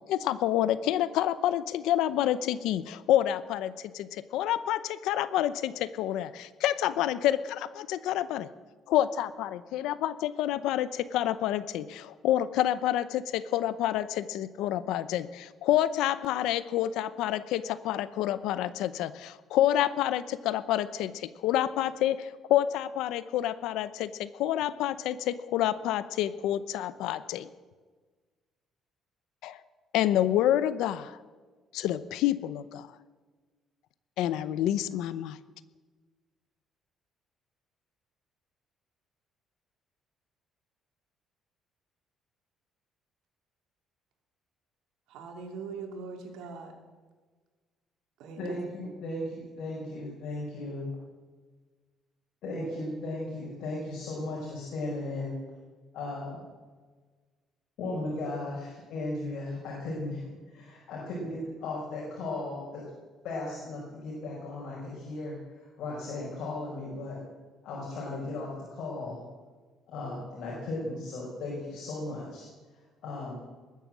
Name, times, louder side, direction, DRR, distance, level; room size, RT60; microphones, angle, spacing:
voice 1, 0.1-8.5 8.9-27.5 29.4-29.6 29.9-31.2 31.7-32.9 34.2-35.4, left 12 dB, 85° left, 0.7 m, -28 dB
voice 2, 45.1-46.7 48.2-48.6 48.8-49.0, right 4 dB, 80° right, 2.7 m, -41 dB
voice 3, 48.3-50.9 52.4-55.3 55.9-56.4 57.8-60.2 60.5-62.8 63.2-65.3 65.8-67.2 67.6-69.2 69.9-72.5 73.0-73.4, left 2 dB, 65° left, 5.1 m, -36 dB
20.5 x 9.3 x 7.6 m
cardioid pair, 180°, 0 cm